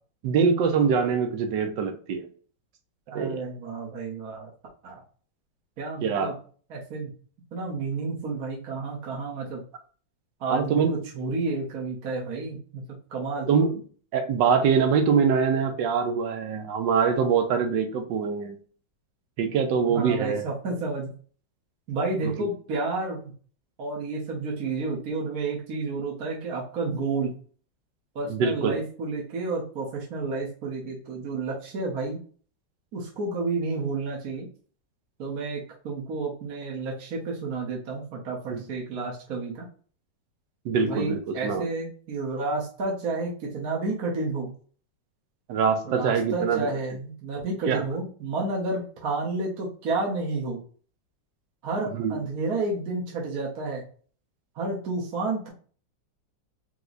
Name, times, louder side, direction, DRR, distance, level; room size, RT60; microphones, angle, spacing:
voice 1, 0.2-2.3 3.1-3.4 6.0-6.4 10.5-10.9 13.5-13.7 14.1-18.6 19.4-20.4 28.3-28.8 38.5-38.6 40.6-41.7 45.5-46.7 47.7-47.8 51.9-52.2, right 6 dB, 75° right, 7 dB, 1.4 m, -24 dB
voice 2, 3.1-4.5 4.8-5.0 5.8-6.3 6.7-7.1 7.5-9.6 10.4-12.8 13.1-13.5 19.9-21.1 21.9-23.3 23.8-27.3 28.1-32.2 32.9-34.5 35.2-39.7 40.8-44.5 45.8-50.6 51.6-53.8 54.5-55.5, right 3 dB, 55° right, -3 dB, 1.5 m, -30 dB
4.7 x 2.2 x 4.0 m, 0.43 s
omnidirectional pair, 2.0 m